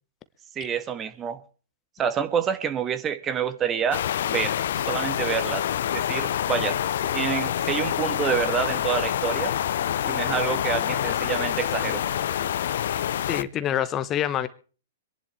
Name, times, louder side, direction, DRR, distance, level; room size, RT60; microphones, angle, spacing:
voice 1, 0.5-1.4 2.0-4.0 4.3-4.5 4.8-5.6 5.9-6.8 7.0-9.5 10.0-12.0, right 8 dB, 25° right, 1.7 m, -27 dB
sound 1, 3.9-13.4, left 10 dB, 65° left, 0.8 m, -26 dB
voice 2, 13.3-14.5, left 11 dB, 30° left, 1.0 m, -26 dB
25.5 x 11.0 x 3.3 m
hypercardioid pair, 115°, 0 cm